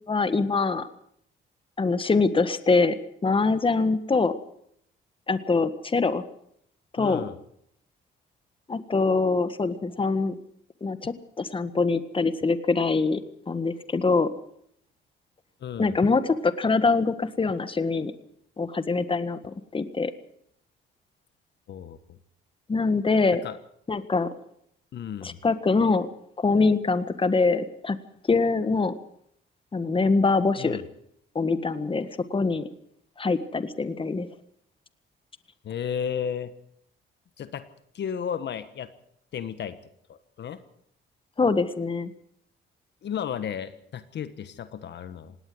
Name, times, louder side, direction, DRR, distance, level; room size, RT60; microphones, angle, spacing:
voice 1, 0.1-0.9 1.8-3.0 3.2-4.3 5.3-6.2 7.0-7.2 8.7-10.3 10.8-13.2 13.5-14.3 15.8-18.1 18.6-20.1 22.7-23.4 23.9-24.3 25.2-26.1 26.4-28.0 28.3-28.9 29.7-30.8 31.3-32.7 33.2-34.3 41.4-42.1, left 4 dB, 25° left, 11 dB, 1.7 m, -24 dB
voice 2, 7.0-7.4 15.6-15.9 21.7-22.2 23.4-23.6 24.9-25.4 30.6-30.9 35.6-36.5 37.4-37.7 37.9-38.9 39.3-39.8 40.1-40.6 43.0-45.4, left 8 dB, 60° left, 12 dB, 1.4 m, -33 dB
18.5 x 18.5 x 7.9 m, 0.70 s
cardioid pair, 90°, 20 cm